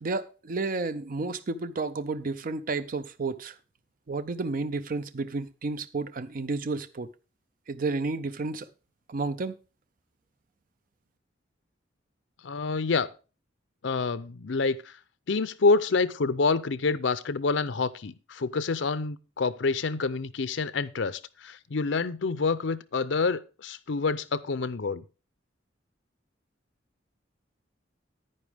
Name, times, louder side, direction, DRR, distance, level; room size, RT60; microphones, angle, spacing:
voice 1, 0.0-3.5 4.1-7.1 7.7-8.7 9.1-9.6, right 3 dB, 45° right, 0.5 m, -31 dB
voice 2, 12.4-13.1 13.8-14.9 15.3-25.0, left 4 dB, 70° left, 0.6 m, -27 dB
9.9 x 9.8 x 3.5 m
head